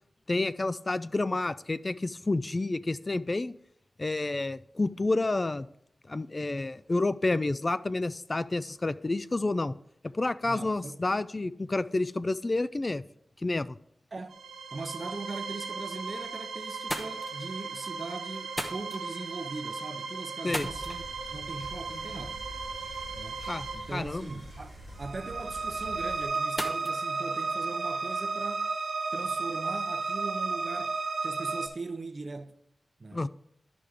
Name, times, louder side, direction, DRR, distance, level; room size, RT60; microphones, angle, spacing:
voice 1, 0.3-3.5 4.0-5.7 6.1-9.7 10.0-13.0 13.4-13.8 20.4-20.7 23.4-24.3 33.1-33.3, left 2 dB, 40° left, 0.3 m, -29 dB
voice 2, 10.4-11.0 14.1-14.4 14.7-21.0 21.3-22.4 23.2-23.4 23.7-28.7 29.1-31.0 31.2-32.6 33.0-33.3, right 3 dB, 50° right, 0.6 m, -40 dB
sound 1, 14.3-31.7, right 4 dB, 90° right, 1.2 m, -35 dB
sound 2, 16.1-16.4 16.7-28.3, equal, 10° left, 1.0 m, -44 dB
sound 3, 20.6-26.3, right 1 dB, 85° left, 3.8 m, -46 dB
12.5 x 5.0 x 3.5 m
cardioid pair, 45°, 0 cm